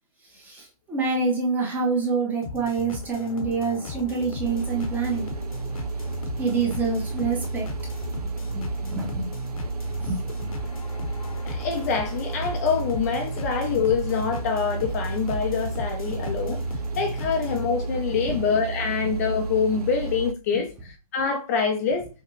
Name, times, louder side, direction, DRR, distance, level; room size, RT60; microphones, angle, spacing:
voice 1, 0.3-5.3 6.4-7.7 8.4-9.3 10.0-10.5 16.1-16.2 18.1-18.4, right 4 dB, 10° right, 0.8 m, -27 dB
sound 1, 2.4-17.7, left 5 dB, 65° left, 1.1 m, -38 dB
sound 2, 4.4-20.3, right 3 dB, 90° right, 0.5 m, -32 dB
voice 2, 11.5-16.6 17.0-22.1, left 6 dB, 25° left, 0.5 m, -25 dB
5.8 x 2.2 x 3.1 m
hypercardioid pair, 145°, 19 cm